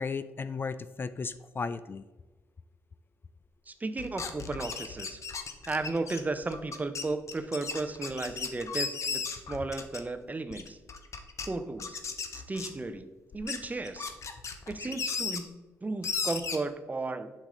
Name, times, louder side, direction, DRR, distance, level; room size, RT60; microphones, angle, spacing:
voice 1, 0.0-2.0, left 5 dB, 35° left, 13 dB, 0.3 m, -35 dB
voice 2, 3.7-5.2 5.7-10.8 11.4-12.0 12.3-13.1 13.3-14.1 14.7-17.3, right 3 dB, 25° right, 10 dB, 0.7 m, -34 dB
sound 1, 4.0-10.2 10.5-11.5 11.8-12.9 13.3-15.4 16.0-16.6, left 5 dB, 55° left, 0.8 m, -36 dB
7.1 x 5.4 x 3.8 m, 1.2 s
supercardioid pair, 55°, 6 cm